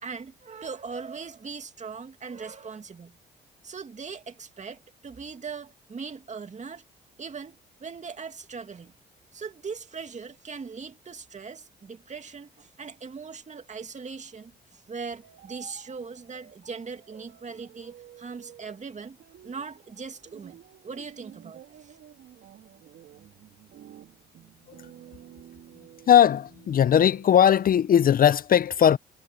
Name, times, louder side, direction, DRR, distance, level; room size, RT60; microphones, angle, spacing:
voice 1, 0.0-3.2 3.6-6.8 7.2-8.9 9.3-19.2 19.4-22.0, right 5 dB, 40° right, 2.3 m, -40 dB
sound 1, 15.2-28.2, right 11 dB, 70° right, 3.6 m, -51 dB
voice 2, 26.1-29.0, left 9 dB, 50° left, 0.6 m, -19 dB
supercardioid pair, 70°, 19 cm